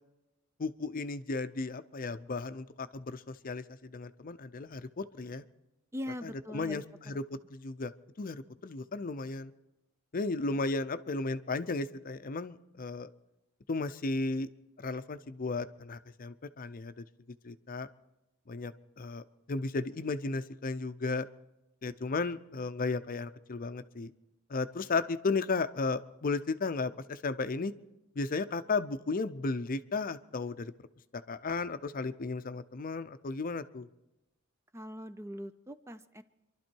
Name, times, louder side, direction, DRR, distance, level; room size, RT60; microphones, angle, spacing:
voice 1, 0.6-5.4 6.2-9.5 10.1-13.1 13.7-14.5 14.8-17.0 17.4-17.9 18.5-21.3 21.8-24.1 24.5-27.7 28.1-30.7 31.1-33.9, left 3 dB, 45° left, 12 dB, 0.6 m, -34 dB
voice 2, 5.9-6.8 34.7-36.2, equal, 15° right, 11 dB, 0.5 m, -41 dB
26.5 x 12.0 x 4.5 m, 0.94 s
head